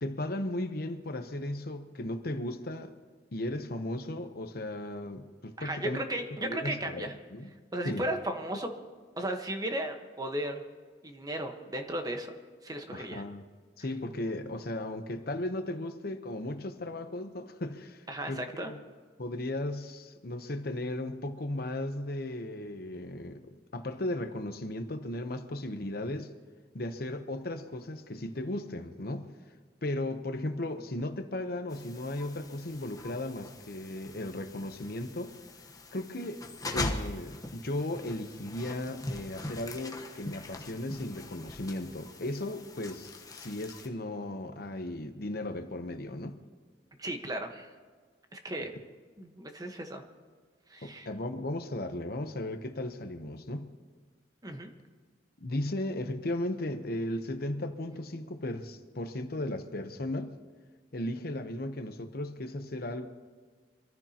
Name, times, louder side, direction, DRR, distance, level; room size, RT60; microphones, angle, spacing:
voice 1, 0.0-2.9 3.3-6.0 6.4-7.5 7.8-8.1 12.9-13.4 13.8-18.8 19.2-26.3 26.7-29.3 29.8-35.4 35.9-36.4 36.7-46.4 50.8-53.7 55.4-60.3 60.9-63.1, left 1 dB, 60° left, 0.9 m, -36 dB
voice 2, 5.6-7.2 7.7-8.7 9.2-10.6 11.0-12.3 12.6-13.2 18.1-18.7 47.0-47.7 48.3-48.7 49.2-50.0 50.7-51.1 54.4-54.7, right 1 dB, 20° right, 1.2 m, -35 dB
sound 1, 31.7-43.9, left 2 dB, 20° left, 1.1 m, -42 dB
25.0 x 14.0 x 2.9 m
head